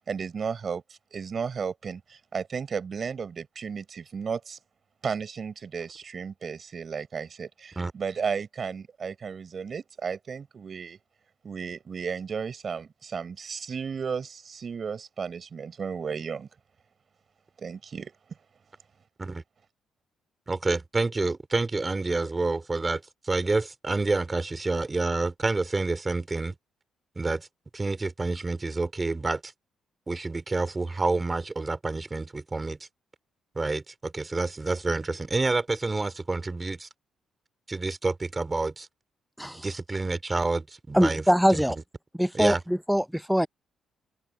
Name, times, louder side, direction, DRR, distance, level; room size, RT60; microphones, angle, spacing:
voice 1, 0.1-4.6 5.0-11.0 11.4-16.5 17.6-18.1, right 6 dB, 45° right, 4.1 m, -34 dB
voice 2, 20.5-26.5 27.2-27.5 27.7-29.5 30.1-32.8 33.6-36.9 37.7-38.9 39.4-41.2 42.3-42.6, right 3 dB, 25° right, 2.6 m, -28 dB
voice 3, 40.9-41.8 42.1-43.5, equal, ahead, 0.5 m, -23 dB
open air
cardioid pair, 90°, 0 cm